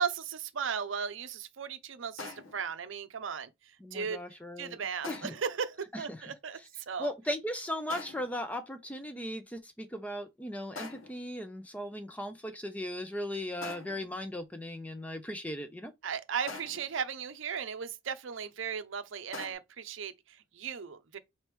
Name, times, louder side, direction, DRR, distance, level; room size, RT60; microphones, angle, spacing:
voice 1, 0.0-3.5 3.9-4.2 4.6-6.6 6.9-7.1 16.0-21.2, right 6 dB, 70° right, 0.6 m, -36 dB
sound 1, 2.2-2.7 5.0-5.6 7.9-8.4 10.8-11.3 13.6-14.1 16.5-17.0 19.3-19.5, left 3 dB, 80° left, 1.1 m, -44 dB
voice 2, 3.8-4.8 5.1-5.3 5.9-6.3 7.0-15.9, left 1 dB, 5° left, 0.5 m, -37 dB
4.1 x 3.3 x 3.1 m
head